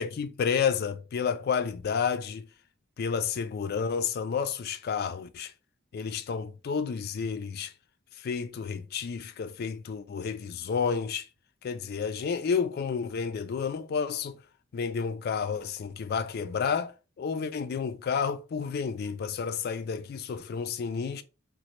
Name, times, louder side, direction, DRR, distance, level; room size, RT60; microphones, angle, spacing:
voice 1, 0.0-2.5 3.0-5.5 5.9-7.7 8.2-11.3 11.6-14.4 14.7-16.9 17.2-21.2, left 6 dB, 50° left, 0.3 m, -30 dB
4.0 x 2.1 x 3.0 m
head